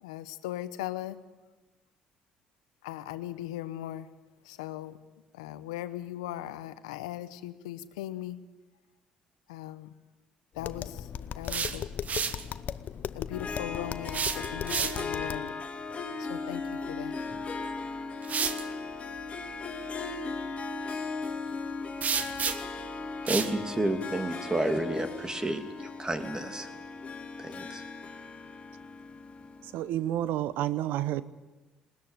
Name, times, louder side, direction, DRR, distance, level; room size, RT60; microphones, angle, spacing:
voice 1, 0.0-1.2 2.8-4.1 4.4-5.0 5.3-8.4 9.5-9.9 10.5-11.1 11.4-11.9 13.1-15.5 16.2-17.1, left 14 dB, 90° left, 0.9 m, -39 dB
Tap, 10.6-15.5, left 9 dB, 55° left, 0.8 m, -38 dB
sound 1, 11.3-12.4 14.0-15.2 17.3-17.4 18.2-18.6 22.0-22.8 23.3-23.5, right 6 dB, 50° right, 1.4 m, -31 dB
Harp, 13.3-29.8, left 4 dB, 35° left, 2.9 m, -37 dB
voice 2, 23.3-26.7 27.4-27.8, right 1 dB, 20° right, 2.8 m, -31 dB
voice 3, 29.7-31.2, right 13 dB, 75° right, 0.9 m, -29 dB
20.5 x 19.0 x 9.2 m
hypercardioid pair, 60°, 3 cm